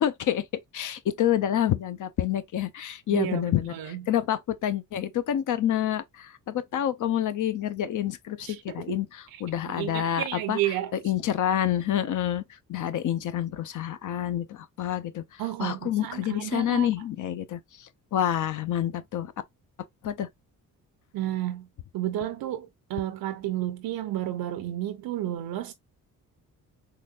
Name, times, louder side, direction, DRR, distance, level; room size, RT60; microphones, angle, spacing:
voice 1, 0.0-0.5 0.7-10.6 11.0-12.4 12.7-19.3 20.0-20.3, left 11 dB, 60° left, 0.7 m, -28 dB
voice 2, 3.1-4.1 8.4-9.0 9.3-9.4 9.7-10.9 15.4-16.9 21.1-21.7 21.9-25.7, right 13 dB, 75° right, 0.6 m, -31 dB
3.9 x 3.2 x 2.4 m
cardioid pair, 95°, 36 cm